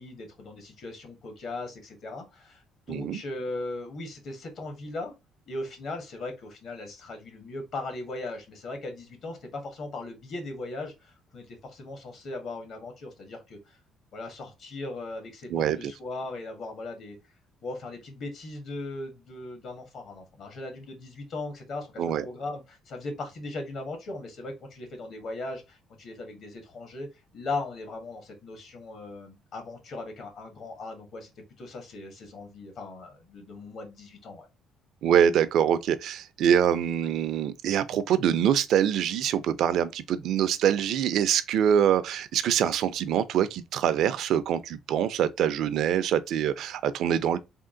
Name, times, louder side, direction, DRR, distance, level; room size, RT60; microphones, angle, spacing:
voice 1, 0.0-2.6 2.9-5.1 5.5-13.8 14.1-17.2 17.6-27.1 27.3-31.3 31.6-34.5, left 2 dB, 55° left, 1.5 m, -38 dB
voice 2, 2.9-3.2 15.5-15.8 22.0-22.3 35.0-47.4, right 9 dB, 65° right, 0.5 m, -24 dB
3.6 x 2.4 x 3.7 m
cardioid pair, 120°, 0 cm